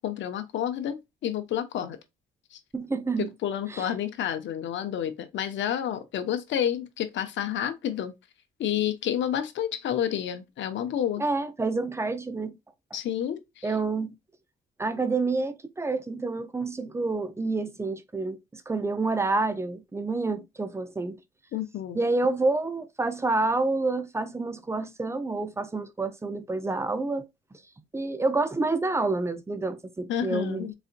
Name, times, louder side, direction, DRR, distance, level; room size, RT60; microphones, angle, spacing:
voice 1, 0.0-2.0 2.5-2.6 3.2-8.1 8.6-11.2 12.9-13.7 21.5-22.0 30.1-30.7, left 10 dB, 70° left, 0.7 m, -30 dB
voice 2, 2.7-3.3 3.7-3.9 11.2-12.6 13.6-14.1 14.8-21.2 21.9-27.2 27.9-30.7, right 3 dB, 15° right, 0.6 m, -28 dB
4.1 x 2.5 x 2.5 m
cardioid pair, 90°, 20 cm